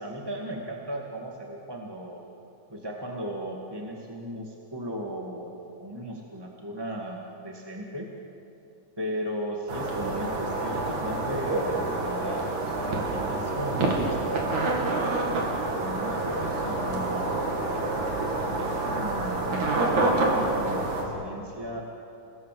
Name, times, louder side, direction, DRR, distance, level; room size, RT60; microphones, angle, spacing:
voice 1, 0.0-2.2 2.7-8.1 9.0-15.1 15.7-21.8, equal, 10° right, -1 dB, 1.3 m, -36 dB
sound 1, 9.7-21.0, right 2 dB, 60° right, 4.4 m, -27 dB
29.5 x 18.5 x 7.8 m, 2.7 s
omnidirectional pair, 3.8 m